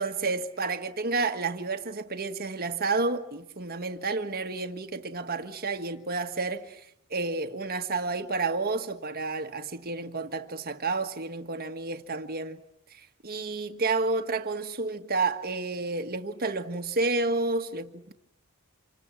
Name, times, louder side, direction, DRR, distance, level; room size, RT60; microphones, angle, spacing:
voice 1, 0.0-6.8 7.1-12.6 12.9-18.1, right 3 dB, 45° right, 1.6 m, -30 dB
27.5 x 27.0 x 7.5 m
head